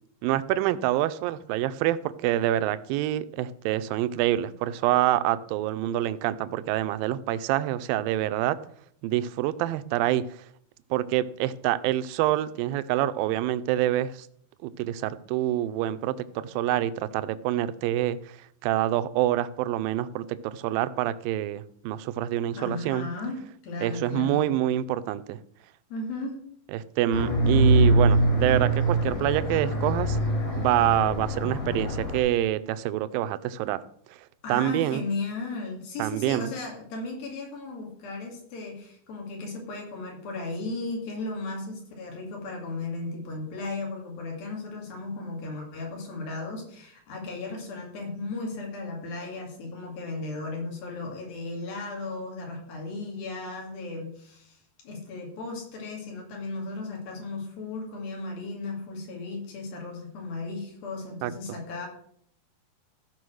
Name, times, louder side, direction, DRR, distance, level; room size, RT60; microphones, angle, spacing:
voice 1, 0.2-8.6 9.0-10.5 10.9-14.3 14.6-18.4 18.6-23.1 23.8-25.4 26.7-30.2 30.6-33.8 34.1-34.2 34.5-35.0 36.0-36.5 61.2-61.3, right 13 dB, 80° right, 13 dB, 2.3 m, -26 dB
voice 2, 22.4-24.4 25.9-26.4 34.4-54.6 54.8-61.9, left 3 dB, 75° left, 0 dB, 4.3 m, -35 dB
sound 1, 27.1-32.2, right 1 dB, 55° left, 4.8 m, -23 dB
14.5 x 5.1 x 6.3 m, 0.64 s
omnidirectional pair, 4.2 m